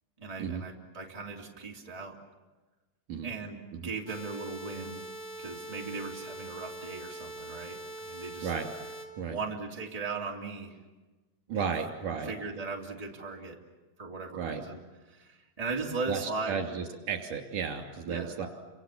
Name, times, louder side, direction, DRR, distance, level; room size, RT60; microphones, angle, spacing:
voice 1, 0.2-2.2 3.2-5.0 5.4-8.5 9.3-10.8 11.5-11.7 12.2-13.6 14.0-14.8 15.1-16.6 18.1-18.3, right 4 dB, 10° right, -1 dB, 2.7 m, -38 dB
sound 1, 4.1-9.1, right 1 dB, 50° left, 3.8 m, -43 dB
voice 2, 11.5-12.3 14.3-14.7 16.1-18.5, right 6 dB, 75° right, 4 dB, 4.4 m, -33 dB
30.0 x 26.5 x 7.4 m, 1.2 s
omnidirectional pair, 3.6 m